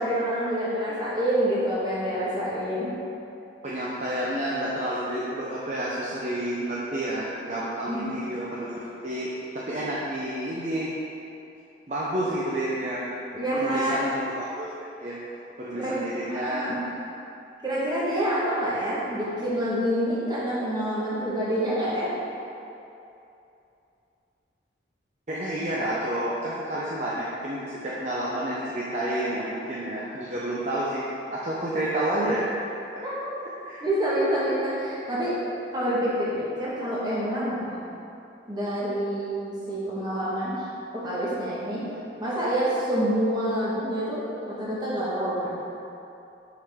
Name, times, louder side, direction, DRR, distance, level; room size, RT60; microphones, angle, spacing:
voice 1, 0.0-2.9 7.9-8.1 13.3-14.0 15.8-15.9 16.3-16.8 17.6-22.1 33.0-33.3 33.8-35.4 35.7-37.7 38.5-40.7 40.9-41.8 42.2-45.6, equal, 25° right, -8 dB, 1.4 m, -27 dB
voice 2, 3.6-10.9 11.9-13.1 13.6-15.2 15.6-16.7 25.3-32.5 33.6-33.8, right 1 dB, 40° right, -6 dB, 0.6 m, -30 dB
5.9 x 5.8 x 3.6 m, 2.8 s
head